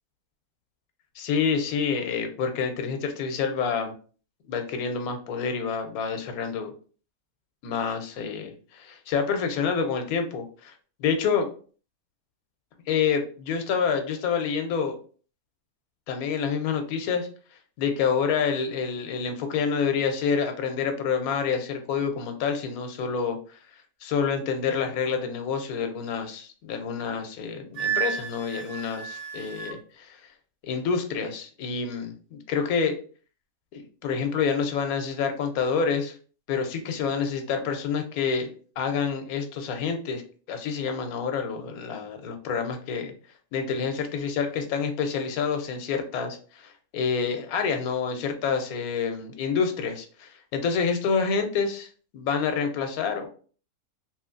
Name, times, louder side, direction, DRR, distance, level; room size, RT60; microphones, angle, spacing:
voice 1, 1.2-3.9 4.5-6.7 7.6-10.7 11.0-11.5 12.9-15.0 16.1-17.3 17.8-23.6 24.0-30.2 30.6-33.0 33.7-36.1 36.5-40.2 40.5-43.1 43.5-53.3, left 6 dB, 90° left, 6 dB, 1.1 m, -28 dB
Wind instrument woodwind instrument, 27.7-29.8, right 8 dB, 75° right, 1.8 m, -31 dB
3.0 x 2.8 x 2.4 m, 0.41 s
omnidirectional pair, 1.5 m